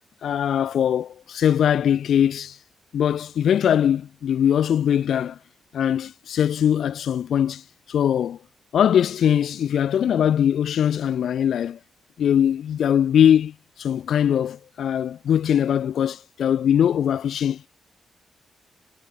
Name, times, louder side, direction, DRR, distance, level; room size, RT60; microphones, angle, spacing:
voice 1, 0.2-2.6 2.9-5.4 5.7-8.4 8.7-11.8 12.2-17.7, left 9 dB, 70° left, 1.0 m, -21 dB
wide cardioid pair, 165°, 0 cm